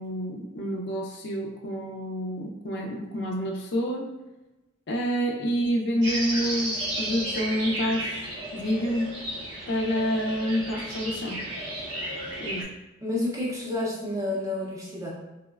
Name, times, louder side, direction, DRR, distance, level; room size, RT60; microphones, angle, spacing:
voice 1, 0.0-4.1 4.9-9.1 9.7-11.4 12.4-12.7, equal, 55° left, 0 dB, 0.4 m, -28 dB
sound 1, 6.0-12.6, right 1 dB, 70° right, 0.7 m, -33 dB
voice 2, 13.0-15.1, left 2 dB, 15° right, -5 dB, 0.5 m, -29 dB
3.7 x 2.1 x 2.3 m, 1.0 s
head